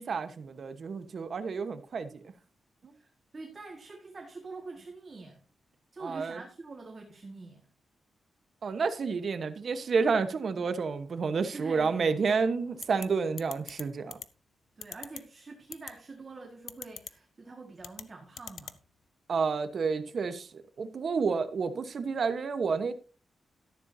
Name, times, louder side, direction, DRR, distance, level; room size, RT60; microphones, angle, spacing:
voice 1, 0.0-2.3 6.0-6.4 8.6-14.2 19.3-20.5 20.8-22.9, right 5 dB, 55° right, 1.2 m, -30 dB
voice 2, 2.9-5.4 5.9-7.6 11.5-12.0 14.8-18.8, right 3 dB, 35° right, 1.8 m, -45 dB
sound 1, 12.8-13.1 13.4-13.8 14.1-14.3 14.8-15.2 15.7-15.9 16.7-17.1 17.8-18.0 18.4-18.8, left 8 dB, 85° left, 0.7 m, -40 dB
13.0 x 11.0 x 2.8 m
wide cardioid pair, 120°, 0 cm